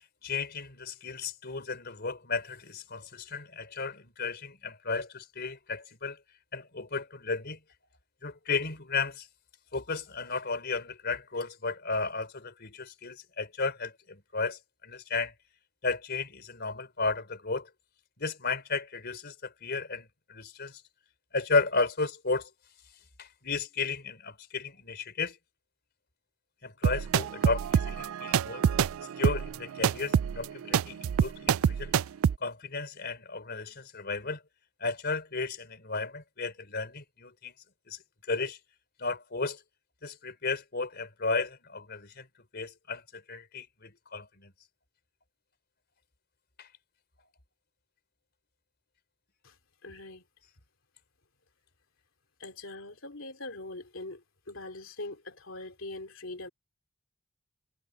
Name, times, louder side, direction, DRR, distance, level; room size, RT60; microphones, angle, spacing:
voice 1, 0.2-6.2 6.5-7.6 8.2-9.3 9.7-15.3 15.8-17.7 18.2-20.8 21.3-22.5 23.2-25.4 26.6-28.6 29.2-31.9 32.4-34.4 34.8-37.5 37.9-38.0 38.3-38.6 39.0-39.6 40.0-42.3 42.5-44.5 46.6-46.7, left 4 dB, 50° left, 4.1 m, -34 dB
sound 1, 26.8-32.4, right 8 dB, 80° right, 0.4 m, -26 dB
voice 2, 49.8-50.2 52.4-56.5, left 2 dB, 70° left, 3.4 m, -42 dB
head